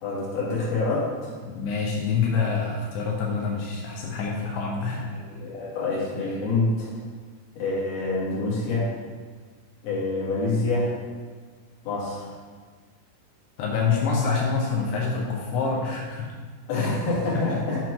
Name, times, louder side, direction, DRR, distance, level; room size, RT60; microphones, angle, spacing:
voice 1, 0.0-1.3 5.1-6.9 7.6-8.9 9.8-10.9 11.9-12.3 16.7-17.8, left 3 dB, 55° left, -7 dB, 3.4 m, -26 dB
voice 2, 1.5-5.1 13.6-16.3 16.8-16.9 17.3-17.6, left 5 dB, 80° left, -2 dB, 2.4 m, -26 dB
7.7 x 4.5 x 4.7 m, 1.5 s
omnidirectional pair, 5.7 m